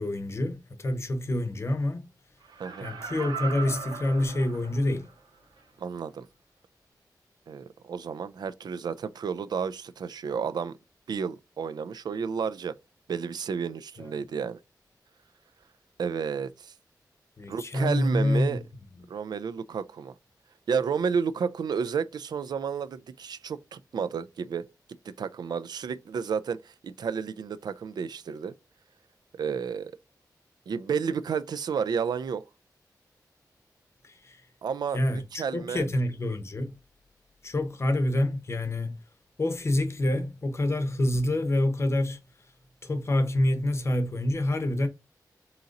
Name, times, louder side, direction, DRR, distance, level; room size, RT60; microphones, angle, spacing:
voice 1, 0.0-2.0 2.8-5.1 14.0-14.1 17.4-18.6 19.0-19.1 34.0-34.4 34.9-36.8 37.4-39.0 39.4-42.2 42.8-44.9, left 1 dB, 40° left, 0.7 m, -27 dB
Laughter, 2.4-5.1 5.6-5.7, right 5 dB, 85° right, 1.0 m, -38 dB
voice 2, 5.8-6.3 7.5-10.8 11.1-12.7 13.1-14.6 16.0-16.7 17.5-18.6 19.1-20.1 20.7-24.7 25.1-28.5 29.3-29.9 30.7-32.4 34.6-35.9, right 6 dB, 70° right, 0.3 m, -31 dB
3.8 x 2.9 x 3.8 m
wide cardioid pair, 130°, 7 cm